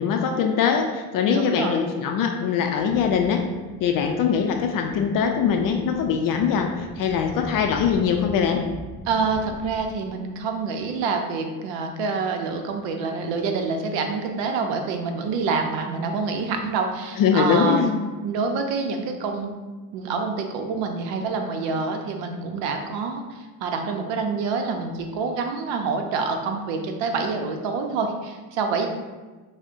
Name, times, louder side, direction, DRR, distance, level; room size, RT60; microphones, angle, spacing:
voice 1, 0.0-3.4 3.8-8.6 17.2-18.1, left 7 dB, 50° left, 4 dB, 0.4 m, -22 dB
voice 2, 1.3-1.8 9.1-17.9 18.2-19.5 19.9-28.9, right 4 dB, 80° right, 4 dB, 0.7 m, -27 dB
sound 1, 2.9-9.9, left 1 dB, 20° right, 1.2 m, -42 dB
6.3 x 2.1 x 2.5 m, 1.3 s
cardioid pair, 120°, 43 cm